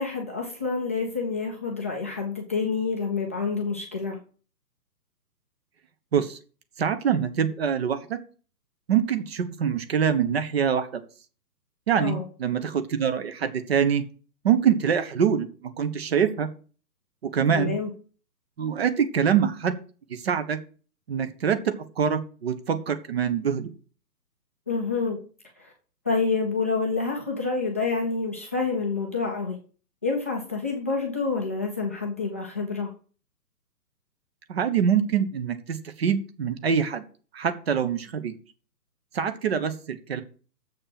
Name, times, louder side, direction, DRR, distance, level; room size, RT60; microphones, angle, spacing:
voice 1, 0.0-4.2 12.0-12.2 17.5-17.9 24.7-25.2 26.0-29.6 30.0-32.9, left 4 dB, 10° left, -2 dB, 0.6 m, -28 dB
voice 2, 6.8-8.2 8.9-11.0 11.9-14.0 14.4-15.5 15.8-16.5 17.2-17.7 18.6-19.7 20.1-20.6 21.1-23.7 34.5-37.0 37.3-38.4 39.1-40.2, right 8 dB, 35° right, 10 dB, 1.2 m, -24 dB
7.4 x 6.5 x 7.6 m, 0.39 s
hypercardioid pair, 150°, 50 cm